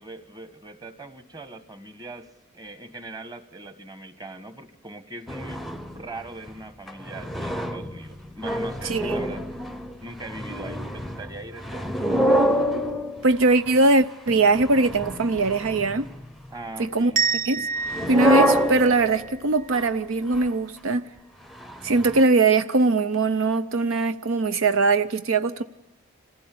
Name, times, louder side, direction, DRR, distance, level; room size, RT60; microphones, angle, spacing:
voice 1, 0.0-2.3 2.5-5.6 5.9-9.5 10.0-12.3 16.5-17.2, right 2 dB, 20° right, 1.4 m, -40 dB
sound 1, 5.3-6.0 6.5-6.6 6.9-13.7 14.3-16.3 17.9-19.2 19.7-19.9 20.3-20.5 21.6-22.2, equal, ahead, 0.7 m, -27 dB
voice 2, 8.8-9.2 13.2-16.1 16.8-17.1 17.5-17.7 18.1-21.0 21.8-25.6, right 3 dB, 70° right, 0.7 m, -21 dB
sound 2, 17.2-19.9, right 5 dB, 40° right, 1.3 m, -29 dB
25.5 x 16.0 x 8.6 m
head